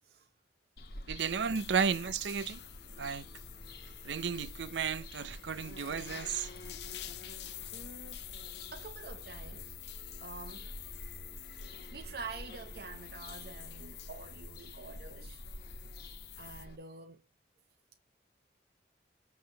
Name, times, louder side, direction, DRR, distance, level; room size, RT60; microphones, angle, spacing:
Bird vocalization bird call bird song, 0.8-16.8, left 1 dB, 55° left, 1.2 m, -49 dB
voice 1, 1.1-2.6 3.0-3.3 4.0-6.5, right 6 dB, 90° right, 0.5 m, -33 dB
sound 1, 1.2-16.7, left 13 dB, 75° left, 0.6 m, -49 dB
sound 2, 1.9-16.3, right 1 dB, 25° right, 1.8 m, -59 dB
voice 2, 7.7-8.2 8.7-9.8 10.2-10.7 11.9-15.4 16.0-17.2, right 4 dB, 60° right, 0.7 m, -47 dB
7.8 x 3.5 x 6.3 m
head